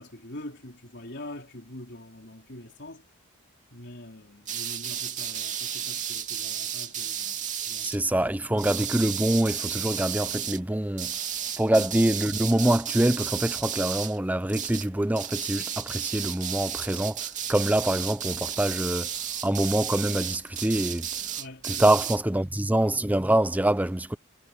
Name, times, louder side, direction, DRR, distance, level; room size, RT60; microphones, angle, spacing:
voice 1, 0.0-3.0 3.7-8.3 11.7-11.9 21.4-22.0, left 1 dB, 55° left, 3.7 m, -44 dB
sound 1, 4.5-8.0 8.6-10.6 11.0-14.2 14.5-14.9 15.2-22.2, right 9 dB, 35° right, 2.9 m, -33 dB
voice 2, 7.8-11.1 11.6-17.2 17.5-19.1 19.4-21.1 21.7-24.2, right 1 dB, 10° right, 0.6 m, -25 dB
head